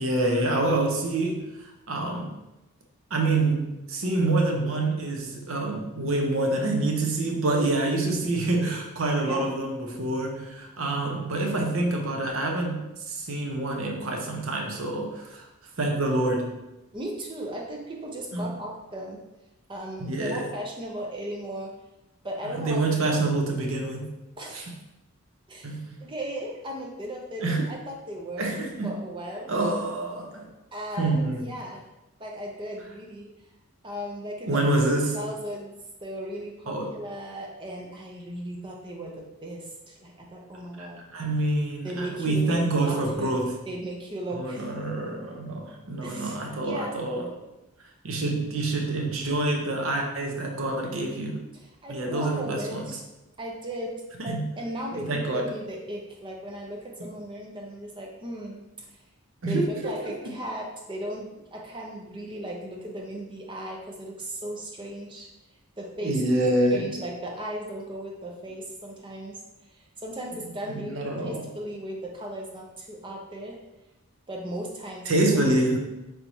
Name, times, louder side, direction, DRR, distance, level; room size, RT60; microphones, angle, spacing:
voice 1, 0.0-2.3 3.1-15.5 15.8-16.5 18.3-18.6 20.0-20.5 22.5-24.1 24.5-24.6 25.6-25.9 27.4-27.6 28.4-28.9 29.5-30.5 31.0-31.4 34.5-35.2 36.7-36.9 40.8-43.6 44.3-47.3 48.0-51.4 51.9-52.9 54.2-54.5 54.9-55.5 59.4-60.2 66.0-66.9 70.7-71.5 75.1-75.8, right 2 dB, 65° right, 2 dB, 0.7 m, -27 dB
voice 2, 16.9-19.2 19.7-21.7 22.2-22.8 24.4-24.6 25.5-25.7 26.0-29.5 30.7-31.8 32.2-33.3 33.8-34.7 35.1-35.8 36.0-41.0 41.8-43.4 43.7-44.8 46.0-47.0 51.5-53.0 53.4-53.9 54.2-58.6 58.9-59.0 59.5-65.3 65.8-66.2 66.7-69.4 69.7-73.6 74.3-75.1, right 1 dB, 20° right, -1 dB, 0.6 m, -36 dB
3.4 x 3.1 x 4.0 m, 0.97 s
head